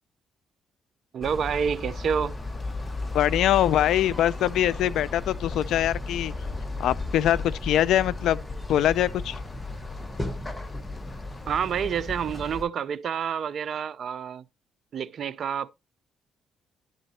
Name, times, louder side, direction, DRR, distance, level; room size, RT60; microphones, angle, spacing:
voice 1, 1.1-2.4 11.5-14.4 14.9-15.7, right 7 dB, 60° right, 0.5 m, -28 dB
sound 1, 1.2-12.6, left 2 dB, 15° left, 1.2 m, -34 dB
voice 2, 3.1-6.3 6.8-8.4 8.7-9.4, left 12 dB, 80° left, 0.4 m, -23 dB
11.0 x 3.9 x 4.2 m
cardioid pair, 90°, 0 cm